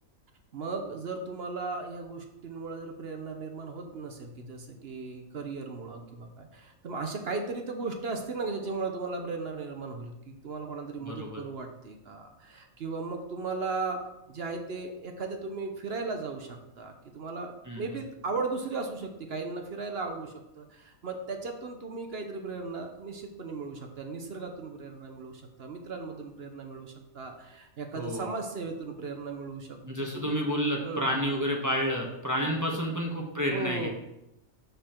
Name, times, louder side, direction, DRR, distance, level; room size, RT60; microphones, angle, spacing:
voice 1, 0.5-29.8 30.1-30.4 30.8-31.2 32.4-32.5 32.9-33.0 33.5-33.9, right 4 dB, 55° right, 4 dB, 0.9 m, -36 dB
voice 2, 11.0-11.4 17.7-18.0 27.9-28.3 29.8-33.9, equal, 15° right, -1 dB, 0.9 m, -30 dB
6.8 x 5.6 x 4.4 m, 0.89 s
omnidirectional pair, 1.4 m